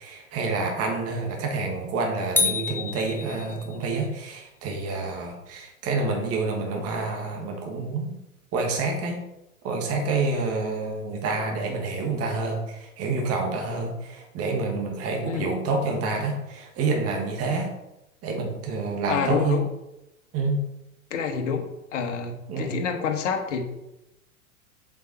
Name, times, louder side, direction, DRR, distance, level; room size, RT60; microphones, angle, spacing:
voice 1, 0.0-8.1 8.5-9.2 9.6-17.7 18.2-19.6 20.3-20.6 22.5-22.8, right 3 dB, 35° right, 2 dB, 2.1 m, -28 dB
sound 1, 2.4-3.9, left 4 dB, 5° left, 0.6 m, -27 dB
voice 2, 19.1-19.6 21.1-23.6, left 6 dB, 60° left, 4 dB, 1.6 m, -28 dB
7.2 x 5.6 x 4.6 m, 0.91 s
figure-of-eight pair, 95°, 42 cm